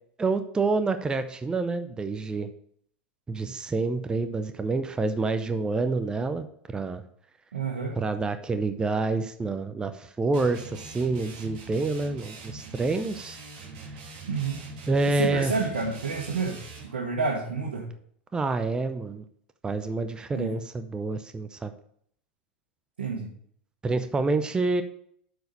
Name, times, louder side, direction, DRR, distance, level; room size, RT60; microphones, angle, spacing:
voice 1, 0.2-2.5 3.3-7.0 8.0-13.4 14.9-15.5 18.3-19.2 19.6-21.7 23.8-24.8, right 3 dB, 15° right, 9 dB, 0.6 m, -28 dB
voice 2, 7.5-8.0 14.3-14.6 15.1-16.6 16.9-17.9 20.3-20.5 23.0-23.3, right 4 dB, 85° right, -1 dB, 1.5 m, -29 dB
sound 1, 10.3-16.9, right 3 dB, 60° right, 2.6 m, -43 dB
7.8 x 4.8 x 5.2 m, 0.64 s
hypercardioid pair, 100°, 6 cm